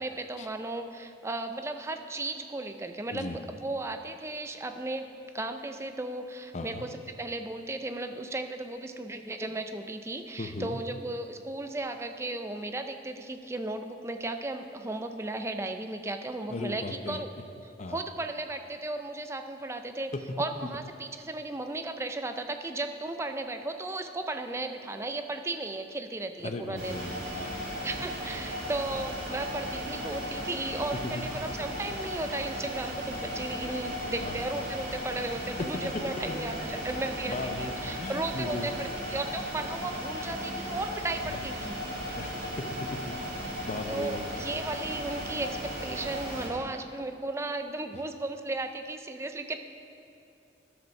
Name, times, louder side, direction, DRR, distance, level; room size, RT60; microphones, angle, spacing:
voice 1, 0.0-5.1 5.3-17.3 17.9-20.1 20.4-27.4 27.8-41.7 43.9-49.6, right 2 dB, 15° right, 7 dB, 0.4 m, -35 dB
voice 2, 3.1-3.4 6.5-6.9 10.4-10.8 16.5-17.2 17.8-18.0 20.1-20.2 26.4-27.7 31.0-31.3 34.2-34.4 35.6-35.8 36.3-36.4 37.3-37.7 38.0-38.7 41.2-41.4 42.1-43.1 43.7-44.3 47.9-48.0, left 2 dB, 40° left, 6 dB, 0.6 m, -37 dB
sound 1, 26.8-46.5, equal, 55° right, 2.8 m, -36 dB
12.5 x 5.2 x 6.4 m, 2.6 s
head